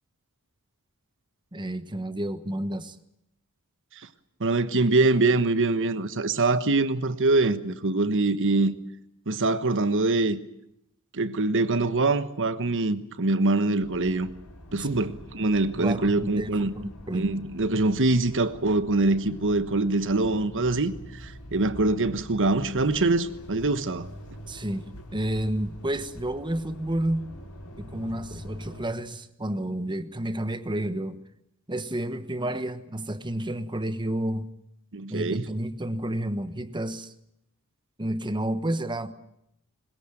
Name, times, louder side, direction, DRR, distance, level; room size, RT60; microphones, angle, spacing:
voice 1, 1.5-3.0 14.7-15.1 15.4-17.3 24.5-27.3 27.8-31.2 31.7-34.5 35.1-37.1 38.0-39.1, right 1 dB, 20° right, 1.2 m, -31 dB
voice 2, 4.4-8.7 9.3-10.4 11.1-14.3 14.7-16.7 17.1-24.1 34.9-35.4, right 2 dB, 60° right, 1.3 m, -24 dB
sound 1, 13.8-28.9, equal, 80° left, 4.9 m, -44 dB
21.0 x 21.0 x 9.0 m
head